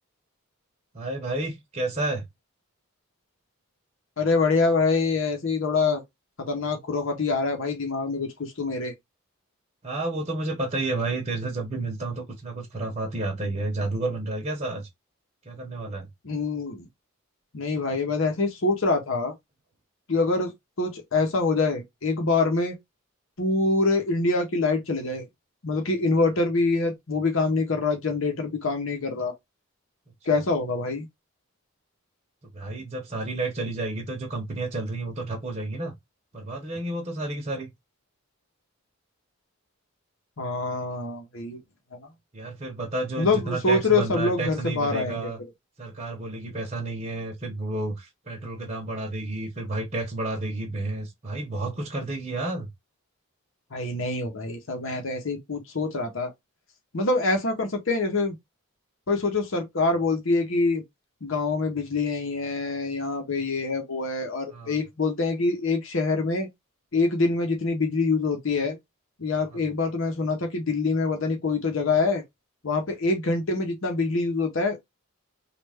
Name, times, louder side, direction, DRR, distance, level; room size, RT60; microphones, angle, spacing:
voice 1, 0.9-2.3 9.8-14.9 15.4-16.1 30.3-30.4 32.5-35.9 36.3-37.7 42.3-45.4 45.8-52.7 64.5-64.8 69.5-69.6, right 2 dB, 30° right, 0.8 m, -31 dB
voice 2, 4.2-6.0 6.4-8.9 16.2-16.9 17.5-19.3 20.1-20.5 20.8-22.7 23.4-25.2 25.6-29.3 30.2-31.1 40.4-41.6 41.9-42.1 43.2-45.3 53.7-56.3 56.9-58.4 59.1-60.8 61.2-66.5 66.9-68.8 69.2-72.2 72.6-74.8, left 3 dB, 65° left, 0.9 m, -25 dB
3.2 x 2.4 x 3.4 m
head